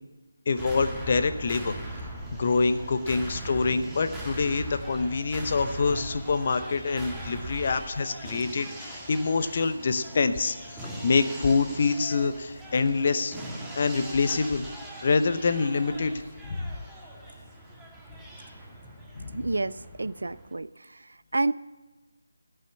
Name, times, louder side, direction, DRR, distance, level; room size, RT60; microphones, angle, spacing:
voice 1, 0.5-1.7 2.4-13.4 13.8-14.7 15.0-16.8 19.1-19.4, left 4 dB, 40° left, 10 dB, 0.7 m, -26 dB
sound 1, 0.6-20.5, right 1 dB, 10° right, 2.0 m, -40 dB
voice 2, 19.3-21.5, right 2 dB, 70° right, 16 dB, 0.4 m, -30 dB
14.5 x 5.7 x 8.5 m, 1.2 s
figure-of-eight pair, 160°, 0 cm